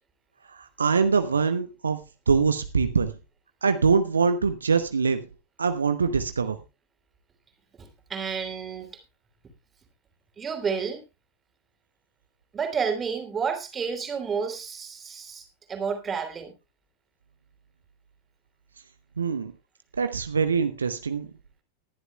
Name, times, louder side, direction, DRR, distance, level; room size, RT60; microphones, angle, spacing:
voice 1, 0.5-2.0 2.3-3.1 3.6-5.3 5.6-6.6 19.2-19.5 20.0-21.3, right 5 dB, 75° right, 9 dB, 0.8 m, -23 dB
voice 2, 7.8-9.0 10.4-11.0 12.5-16.5, right 6 dB, 20° right, 4 dB, 3.1 m, -30 dB
20.0 x 11.0 x 2.3 m, 0.26 s
figure-of-eight pair, 90°, 0 cm